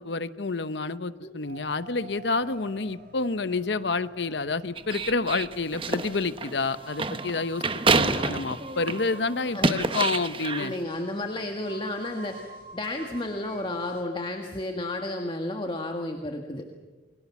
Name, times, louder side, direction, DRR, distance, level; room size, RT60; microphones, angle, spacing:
voice 1, 0.0-7.6 7.9-10.7, left 3 dB, 70° left, 13 dB, 0.9 m, -29 dB
sound 1, 1.4-14.0, right 2 dB, 55° right, 5.2 m, -48 dB
sound 2, 4.8-9.1 9.5-10.8, right 3 dB, 30° right, 1.0 m, -27 dB
voice 2, 9.5-10.0 10.6-12.4 12.7-16.6, left 1 dB, 30° left, 3 dB, 1.6 m, -32 dB
29.0 x 22.0 x 7.2 m, 1.3 s
head